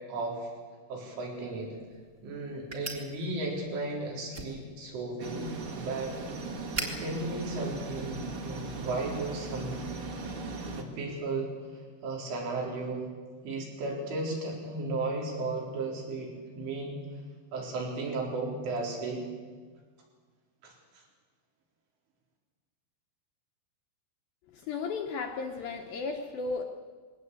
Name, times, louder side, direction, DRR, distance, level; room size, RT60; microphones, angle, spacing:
voice 1, 0.1-0.5 0.9-1.8 2.2-6.2 6.8-9.8 10.8-11.5 12.0-13.1 13.5-17.0 17.5-19.2 20.6-21.0, right 2 dB, 90° right, -2 dB, 6.9 m, -35 dB
sound 1, 1.3-8.5, right 2 dB, 25° right, 1.2 m, -44 dB
sound 2, 5.2-10.8, right 3 dB, 45° right, 1.9 m, -39 dB
voice 2, 24.5-26.6, left 4 dB, 70° left, 3 dB, 2.3 m, -34 dB
21.0 x 17.5 x 8.5 m, 1.5 s
omnidirectional pair, 5.4 m